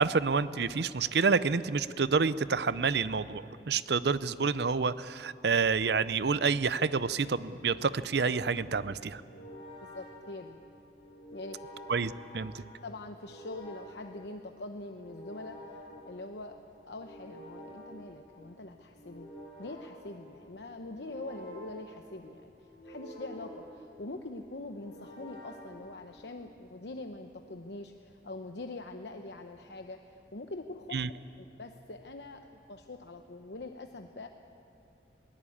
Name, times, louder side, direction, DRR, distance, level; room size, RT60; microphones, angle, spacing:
voice 1, 0.0-9.2 11.9-12.6 30.9-31.1, right 5 dB, 65° right, 16 dB, 0.6 m, -28 dB
sound 1, 8.1-26.5, equal, 30° left, 6.7 m, -50 dB
voice 2, 9.8-10.6 11.3-12.0 12.8-15.6 16.0-16.6 16.9-19.3 19.6-34.3, left 2 dB, 70° left, 5 dB, 0.9 m, -44 dB
22.0 x 17.5 x 8.6 m, 2.7 s
head